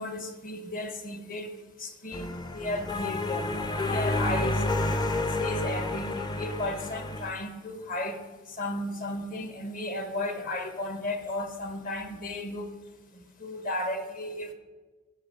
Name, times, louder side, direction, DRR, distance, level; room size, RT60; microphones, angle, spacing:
voice 1, 0.0-1.5 1.8-3.5 3.8-4.7 5.1-8.3 8.6-12.7 13.4-14.5, left 1 dB, 40° left, 1.1 m, -34 dB
sound 1, 2.1-7.3, left 2 dB, 20° left, 0.5 m, -30 dB
15.0 x 5.1 x 5.4 m
head